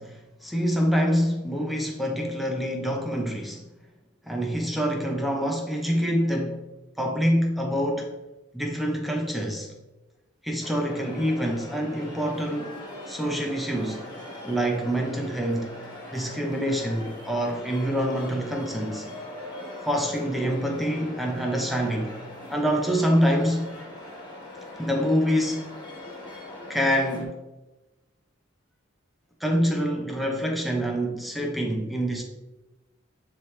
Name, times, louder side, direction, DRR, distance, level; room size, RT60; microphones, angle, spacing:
voice 1, 0.0-3.6 4.3-6.6 7.0-8.1 8.5-9.7 10.4-12.8 13.1-14.1 14.4-15.7 16.1-19.1 19.8-22.2 22.5-23.7 24.8-25.6 26.7-27.4 29.4-32.2, equal, ahead, 1 dB, 0.7 m, -26 dB
sound 1, 10.6-27.2, left 1 dB, 20° left, 1.5 m, -41 dB
9.9 x 3.3 x 3.2 m, 1.0 s
head